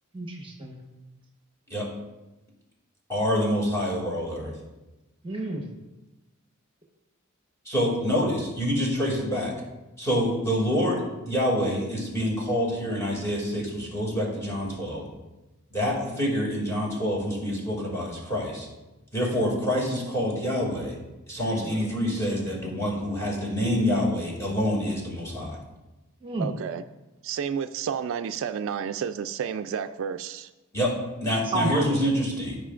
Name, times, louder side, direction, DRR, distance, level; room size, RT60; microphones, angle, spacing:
voice 1, 0.1-0.8 5.2-5.6 21.6-21.9 26.2-26.5 31.4-31.8, right 2 dB, 25° right, 0 dB, 1.0 m, -30 dB
voice 2, 3.1-4.5 7.7-9.5 10.0-15.1 15.7-18.7 19.1-21.0 21.3-25.6 30.7-30.9 31.2-32.6, equal, 15° left, -4 dB, 2.3 m, -26 dB
voice 3, 26.4-26.8 27.2-30.5, right 7 dB, 65° right, 10 dB, 0.3 m, -31 dB
15.0 x 5.0 x 2.5 m, 1.1 s
head